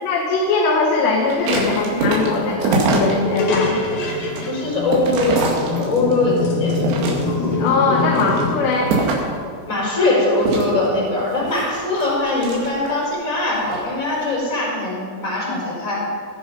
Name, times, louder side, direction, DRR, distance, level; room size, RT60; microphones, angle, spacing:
voice 1, 0.0-3.8 7.4-9.0, left 3 dB, 90° left, -1 dB, 3.6 m, -20 dB
sound 1, 1.2-3.4 3.8-6.2 6.7-7.5 8.0-9.4 10.4-13.1 13.5-13.9, right 3 dB, 80° right, 4.3 m, -24 dB
sound 2, 3.2-8.6, left 2 dB, 60° left, 3.5 m, -24 dB
voice 2, 4.4-6.8 9.7-16.0, left 2 dB, 20° left, -4 dB, 4.9 m, -21 dB
18.5 x 11.0 x 5.3 m, 2.2 s
omnidirectional pair, 4.8 m